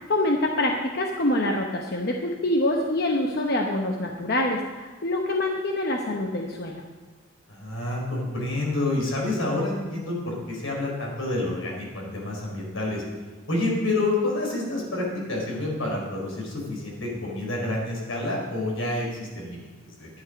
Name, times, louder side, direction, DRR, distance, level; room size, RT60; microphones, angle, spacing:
voice 1, 0.1-6.8, left 1 dB, 50° left, 1 dB, 0.9 m, -25 dB
voice 2, 7.5-13.0 13.5-20.1, left 2 dB, 90° left, -2 dB, 4.7 m, -28 dB
11.5 x 11.0 x 5.3 m, 1.3 s
head